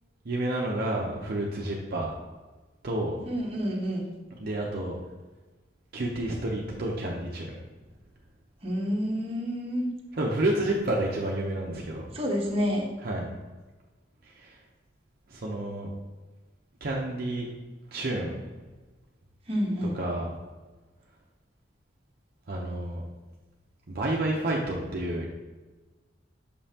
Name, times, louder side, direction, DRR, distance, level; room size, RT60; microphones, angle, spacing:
voice 1, 0.2-2.1 2.8-3.2 4.4-5.0 5.9-7.6 10.1-12.1 13.0-13.3 14.2-14.6 15.3-15.9 16.8-17.5 17.9-18.4 19.8-20.3 22.5-23.0 23.9-25.3, right 1 dB, 55° right, -2 dB, 0.7 m, -30 dB
voice 2, 3.3-4.1 8.6-9.9 12.1-12.9 19.5-20.0, equal, 35° right, -2 dB, 1.1 m, -28 dB
6.7 x 5.4 x 2.8 m, 1.2 s
head